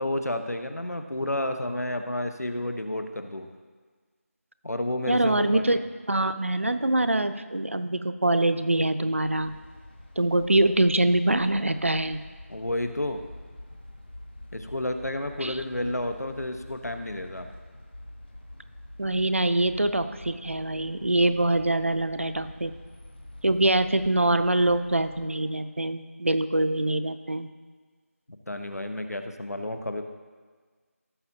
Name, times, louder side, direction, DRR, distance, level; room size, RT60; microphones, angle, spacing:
voice 1, 0.0-3.5 4.6-5.8 12.5-13.2 14.5-17.5 28.3-30.0, left 1 dB, 90° left, 7 dB, 1.1 m, -31 dB
voice 2, 5.1-5.8 6.1-9.5 10.2-12.2 15.4-15.6 19.0-22.7 23.4-27.5, right 1 dB, 55° right, 11 dB, 0.6 m, -24 dB
sound 1, 9.2-25.3, left 1 dB, 40° left, 1.4 m, -46 dB
17.0 x 7.4 x 2.8 m, 1.5 s
figure-of-eight pair, 175°, 8 cm